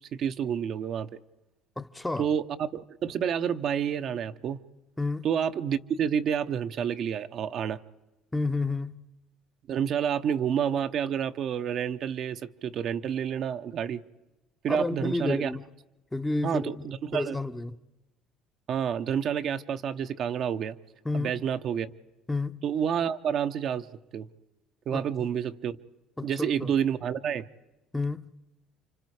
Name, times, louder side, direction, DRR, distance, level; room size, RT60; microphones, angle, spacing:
voice 1, 0.1-1.2 2.2-4.6 5.2-7.8 9.7-14.0 14.6-15.5 16.4-17.4 18.7-20.8 21.1-21.9 22.6-23.9 24.1-24.3 24.9-25.8 26.2-27.5, right 8 dB, 55° right, 0.8 m, -29 dB
voice 2, 1.8-2.3 5.0-5.3 8.3-9.0 14.7-15.6 16.1-16.9 17.1-17.8 21.0-21.3 22.3-22.6 24.9-25.0 26.2-26.7 27.9-28.3, left 2 dB, 10° left, 0.8 m, -30 dB
29.0 x 25.5 x 4.9 m
supercardioid pair, 95°, 0 cm